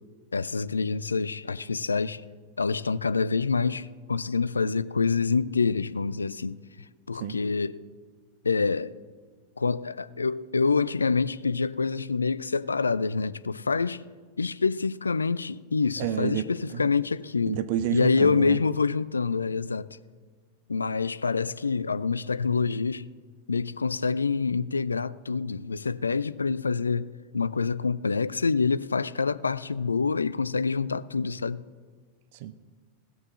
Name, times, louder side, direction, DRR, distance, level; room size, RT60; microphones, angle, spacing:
voice 1, 0.3-2.2 2.6-7.8 8.4-8.9 9.6-14.0 14.4-17.6 17.9-19.9 20.7-23.1 23.5-27.1 27.3-31.6, left 4 dB, 75° left, 0.4 m, -26 dB
voice 2, 16.0-16.5 17.5-18.6 32.3-32.6, right 11 dB, 50° right, 0.6 m, -29 dB
17.0 x 6.6 x 7.4 m
figure-of-eight pair, 90°, 0 cm